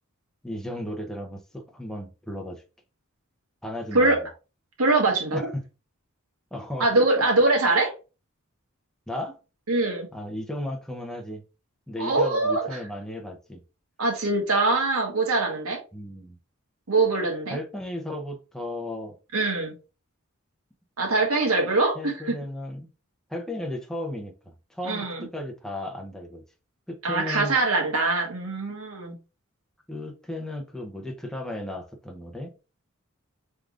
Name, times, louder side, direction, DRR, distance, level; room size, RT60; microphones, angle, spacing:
voice 1, 0.4-2.6 3.6-4.2 5.3-5.6 6.5-6.9 7.2-7.3 9.1-9.4 10.1-11.4 11.9-13.6 15.9-16.4 17.5-19.2 22.0-22.9 23.3-26.4 26.9-27.6 29.9-32.5, left 1 dB, ahead, 0.7 m, -35 dB
voice 2, 4.8-5.4 6.8-7.9 9.7-10.1 12.0-12.6 14.0-15.8 16.9-17.6 19.3-19.7 21.0-22.3 24.8-25.3 27.0-29.1, right 2 dB, 85° right, 1.5 m, -23 dB
4.9 x 3.5 x 2.5 m
head